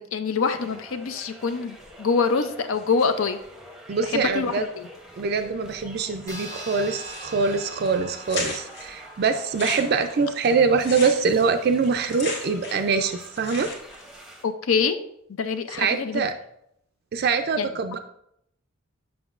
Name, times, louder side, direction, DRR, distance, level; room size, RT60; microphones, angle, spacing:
voice 1, 0.0-3.4 4.0-4.9 14.4-15.0 15.4-16.3 17.6-17.7, left 5 dB, 75° left, 10 dB, 0.5 m, -25 dB
sound 1, 0.5-14.4, equal, ahead, 0.7 m, -47 dB
voice 2, 3.9-4.6 5.2-13.7 15.8-16.3 17.1-18.0, right 5 dB, 50° right, 7 dB, 0.3 m, -24 dB
sound 2, 6.3-11.1, right 1 dB, 15° left, 1.0 m, -43 dB
sound 3, 7.1-7.5 7.9-8.0 8.3-8.8 9.4-12.9 13.2-14.0, left 3 dB, 55° left, 1.3 m, -35 dB
7.1 x 5.9 x 2.4 m, 0.74 s
head